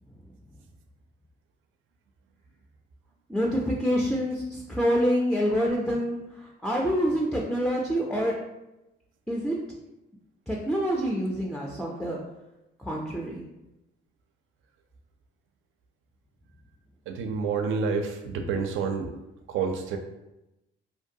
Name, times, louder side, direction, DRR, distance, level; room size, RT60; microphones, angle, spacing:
voice 1, 3.3-8.4 9.3-9.5 10.5-12.2 12.8-13.5, equal, ahead, -2 dB, 0.3 m, -27 dB
voice 2, 17.1-19.1 19.5-20.0, right 5 dB, 80° right, 4 dB, 0.4 m, -28 dB
2.5 x 2.2 x 2.6 m, 0.95 s
cardioid pair, 90°, 20 cm